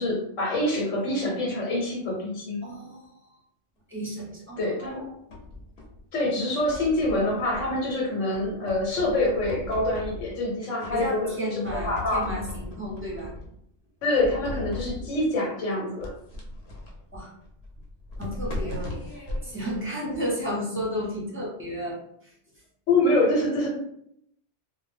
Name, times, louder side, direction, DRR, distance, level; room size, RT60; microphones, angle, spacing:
voice 1, 0.0-2.6 4.6-5.0 6.1-12.3 14.0-16.1 22.9-23.7, left 2 dB, 85° left, -2 dB, 1.1 m, -26 dB
voice 2, 2.6-3.2 3.9-5.1 10.9-13.3 17.1-17.3 18.2-19.0 19.4-22.0 22.2-22.3, equal, 15° right, -4 dB, 0.5 m, -33 dB
sound 1, 4.8-6.1 6.6-7.9 8.3-10.5 10.8-11.4 11.6-13.6 14.2-15.2 16.0-20.5, left 2 dB, 65° left, 0.9 m, -38 dB
2.2 x 2.0 x 3.2 m, 0.72 s
omnidirectional pair, 1.3 m